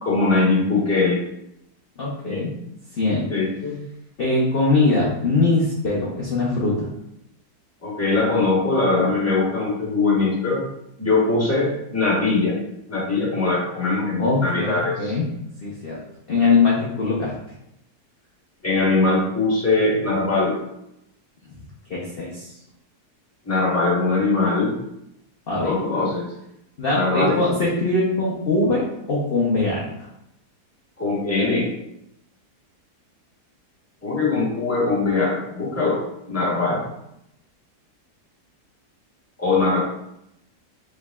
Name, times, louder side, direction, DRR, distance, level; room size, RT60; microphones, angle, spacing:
voice 1, 0.0-1.2 2.2-2.4 3.3-3.8 7.8-10.6 11.0-12.6 12.9-15.1 18.6-20.6 23.4-24.7 25.6-26.3 26.9-27.4 31.0-31.7 34.0-36.8 39.4-39.8, left 3 dB, 10° left, -6 dB, 1.1 m, -21 dB
voice 2, 2.0-2.5 3.0-3.3 4.2-6.9 14.2-15.3 15.6-16.0 16.3-17.3 21.9-22.5 25.5-25.7 26.8-29.9, left 3 dB, 45° left, -5 dB, 0.8 m, -21 dB
5.1 x 3.7 x 2.3 m, 0.81 s
omnidirectional pair, 1.8 m